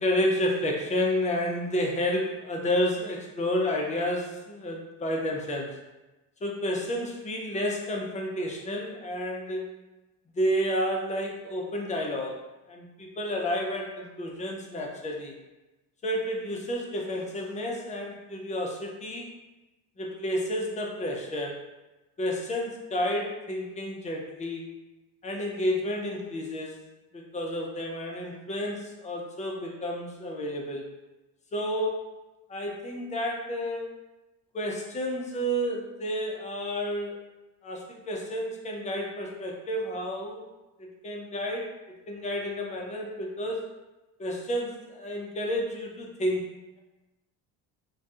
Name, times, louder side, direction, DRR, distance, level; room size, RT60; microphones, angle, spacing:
voice 1, 0.0-5.8 6.4-9.6 10.3-12.4 12.7-15.3 16.0-19.4 20.0-21.6 22.2-24.7 25.2-26.8 27.1-30.8 31.5-32.1 32.5-33.9 34.5-37.2 37.6-40.5 40.8-41.7 42.1-43.6 44.2-46.5, equal, 15° left, 0 dB, 0.3 m, -30 dB
2.2 x 2.2 x 2.6 m, 1.1 s
hypercardioid pair, 70°, 50 cm